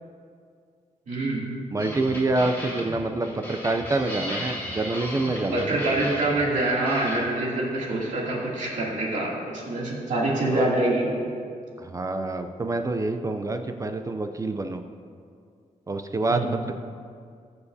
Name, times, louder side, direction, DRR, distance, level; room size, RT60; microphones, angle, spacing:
voice 1, 1.1-1.4 5.5-11.1 16.3-16.6, right 2 dB, 65° right, -4 dB, 2.6 m, -25 dB
voice 2, 1.7-5.8 10.5-10.7 11.8-14.8 15.9-16.8, right 2 dB, 25° right, 6 dB, 0.4 m, -27 dB
sound 1, 1.8-7.2, equal, 15° left, 2.2 m, -36 dB
20.0 x 7.1 x 2.7 m, 2.3 s
wide cardioid pair, 165°, 14 cm